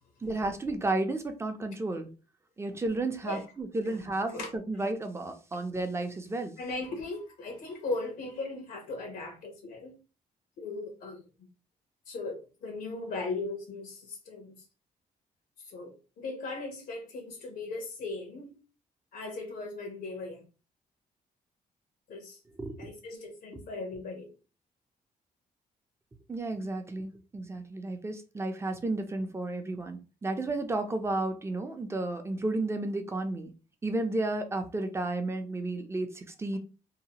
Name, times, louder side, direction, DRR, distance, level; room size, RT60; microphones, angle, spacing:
voice 1, 0.2-2.1 2.6-6.5 22.6-22.9 26.3-33.5 33.8-36.6, right 2 dB, 15° right, 0.6 m, -32 dB
voice 2, 6.6-9.9 10.6-11.2 12.1-14.5 15.6-15.9 16.2-18.6 19.1-20.4 22.1-22.4 22.8-24.3, left 3 dB, 85° left, 0.9 m, -38 dB
2.8 x 2.1 x 2.9 m
cardioid pair, 95°, 15 cm